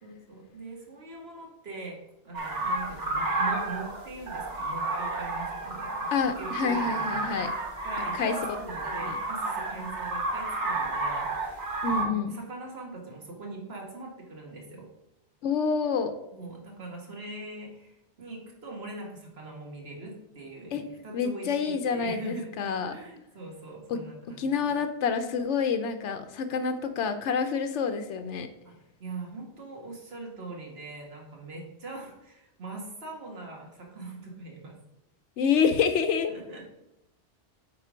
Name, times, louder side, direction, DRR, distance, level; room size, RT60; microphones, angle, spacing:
voice 1, 0.0-2.0 2.2-6.1 6.4-14.9 16.3-24.8 28.7-28.8 29.0-34.7 36.3-36.6, right 3 dB, 60° right, -1 dB, 2.0 m, -42 dB
sound 1, 2.3-12.0, right 2 dB, 90° right, 1.7 m, -31 dB
voice 2, 6.1-7.5 8.0-8.3 8.8-9.2 11.8-12.4 15.4-16.1 20.7-20.8 21.1-22.9 23.9-24.0 24.4-28.5 35.4-36.3, left 6 dB, 90° left, 8 dB, 1.0 m, -28 dB
8.7 x 4.0 x 5.0 m, 0.90 s
omnidirectional pair, 1.2 m